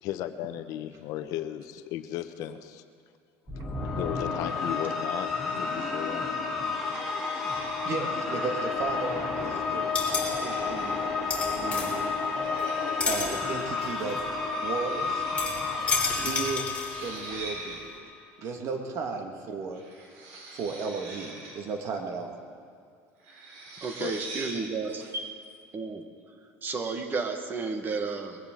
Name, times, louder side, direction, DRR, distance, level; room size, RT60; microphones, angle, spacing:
voice 1, 0.0-2.8 3.9-6.3 24.0-24.1, left 12 dB, 65° left, 10 dB, 0.8 m, -35 dB
sound 1, 3.5-17.9, left 4 dB, 5° right, 4.3 m, -31 dB
sound 2, 6.8-8.1 9.3-9.6 10.1-11.1 12.3-13.2 14.4-15.5 15.8-15.9 16.7-17.8 19.7-21.7 23.2-24.7, right 2 dB, 85° right, 4.0 m, -44 dB
voice 2, 7.5-9.8 10.4-11.0 11.5-12.1 13.0-14.2 14.6-15.2 16.2-17.9 18.4-19.8 20.3-22.4 25.0-25.1, right 4 dB, 50° right, 3 dB, 1.9 m, -35 dB
sound 3, 8.6-9.4 9.6-12.7 13.0-17.4 17.8-17.9, left 4 dB, 20° left, 3.6 m, -32 dB
voice 3, 23.8-25.3 25.7-26.0 26.6-28.4, right 4 dB, 30° right, 6 dB, 1.5 m, -32 dB
21.5 x 16.0 x 3.9 m, 2.2 s
cardioid pair, 130°, 6 cm